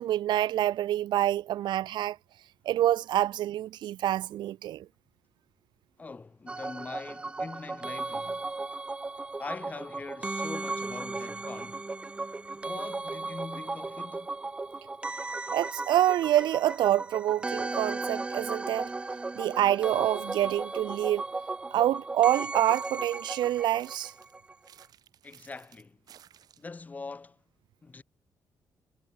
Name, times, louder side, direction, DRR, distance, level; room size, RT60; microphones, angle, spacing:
voice 1, 0.0-2.2 2.7-4.9 15.5-18.9 19.4-21.2 21.7-24.1, right 13 dB, 75° right, 0.7 m, -26 dB
voice 2, 6.0-8.5 9.4-11.9 12.6-14.3 25.2-26.0 26.6-27.4 27.8-28.0, left 4 dB, 20° left, 2.5 m, -42 dB
sound 1, 6.5-24.5 24.8-24.9, right 3 dB, 15° right, 0.4 m, -36 dB
sound 2, 22.3-23.4 23.8-26.8, right 9 dB, 55° right, 3.8 m, -57 dB
cardioid pair, 165°, 8 cm